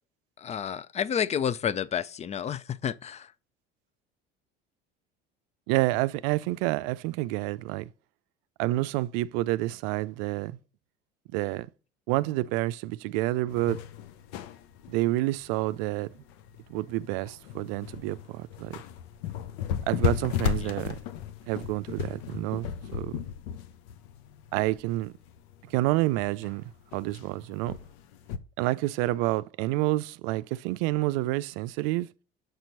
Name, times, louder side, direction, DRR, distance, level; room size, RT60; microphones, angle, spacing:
voice 1, 0.4-3.3 20.6-20.7, left 8 dB, 20° left, 0.4 m, -30 dB
voice 2, 5.7-7.9 8.6-10.6 11.3-11.7 12.1-13.8 14.9-16.1 16.7-18.8 19.9-21.0 21.5-22.7 22.9-23.2 24.5-25.1 25.7-27.8 28.6-32.1, right 18 dB, 65° right, 0.5 m, -28 dB
sound 1, 13.5-28.4, left 9 dB, 65° left, 0.7 m, -35 dB
6.7 x 4.4 x 3.9 m
hypercardioid pair, 70°, 32 cm